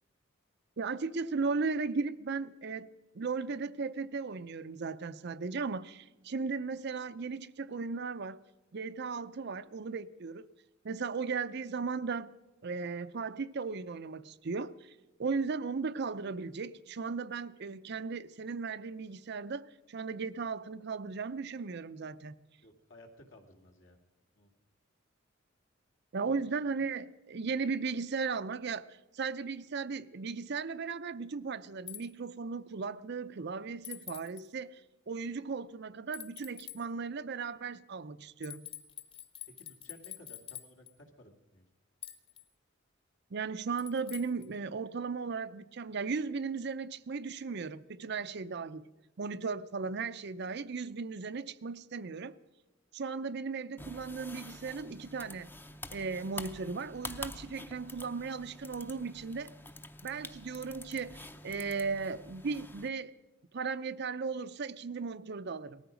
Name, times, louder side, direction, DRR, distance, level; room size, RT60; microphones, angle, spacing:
voice 1, 0.8-8.4 8.7-10.5 10.8-12.4 12.6-14.9 15.2-22.3 26.1-28.9 29.1-34.8 35.1-38.6 43.3-48.9 49.2-52.4 52.9-55.5 55.9-59.5 60.0-63.1 63.5-65.8, right 4 dB, 60° right, 0.6 m, -36 dB
voice 2, 22.6-24.0 24.3-24.5 26.2-26.6 39.6-41.7, left 1 dB, 70° left, 2.3 m, -56 dB
sound 1, 31.9-32.0 33.8-34.4 36.1-36.8 38.4-40.9 42.0-42.4 43.8-44.5, left 11 dB, 30° left, 1.1 m, -46 dB
sound 2, 53.8-62.9, left 2 dB, 10° left, 0.6 m, -47 dB
18.5 x 14.0 x 5.1 m
head